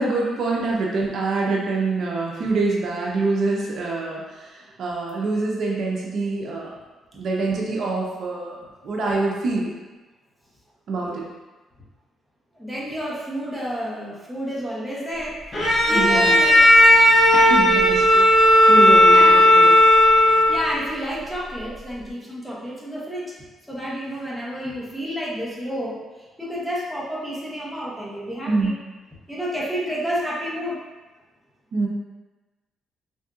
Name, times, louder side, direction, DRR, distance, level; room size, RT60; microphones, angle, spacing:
voice 1, 0.0-4.2 4.8-6.7 7.1-8.6 8.8-9.7 10.9-11.2 15.9-16.3 17.3-18.3 18.7-19.7 28.5-28.7 31.7-31.9, right 3 dB, 60° right, -3 dB, 0.6 m, -25 dB
voice 2, 12.6-15.4 15.9-16.7 19.1-19.5 20.5-23.3 23.7-28.7 29.3-30.8, equal, ahead, -6 dB, 0.9 m, -30 dB
Bowed string instrument, 15.5-20.8, left 1 dB, 30° left, 0.7 m, -14 dB
3.5 x 2.6 x 2.4 m, 1.2 s
cardioid pair, 90°, 0 cm